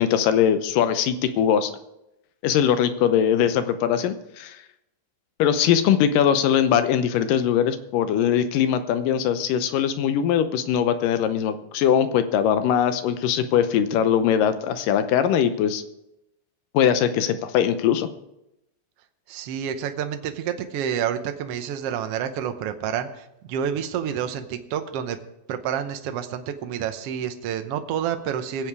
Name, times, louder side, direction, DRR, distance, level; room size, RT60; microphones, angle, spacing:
voice 1, 0.0-1.7 2.4-4.6 5.4-15.8 16.7-18.1, left 9 dB, 80° left, 10 dB, 2.4 m, -21 dB
voice 2, 19.3-25.2 25.5-28.7, right 8 dB, 75° right, 8 dB, 1.4 m, -29 dB
21.5 x 7.7 x 4.8 m, 0.87 s
omnidirectional pair, 3.9 m